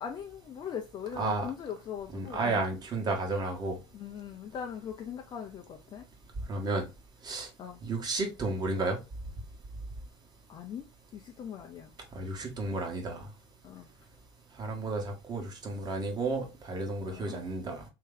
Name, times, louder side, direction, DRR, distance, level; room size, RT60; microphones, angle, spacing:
voice 1, 0.0-2.6 3.9-6.0 7.6-7.8 10.5-10.9 11.1-11.9 13.6-13.9 17.1-17.4, left 8 dB, 30° left, 0.5 m, -40 dB
voice 2, 1.2-1.5 2.1-3.8 6.5-6.9 7.2-7.5 7.8-9.0 12.1-13.3 14.6-17.8, right 3 dB, 30° right, 1.2 m, -32 dB
3.2 x 2.8 x 3.7 m
figure-of-eight pair, 75°, 15 cm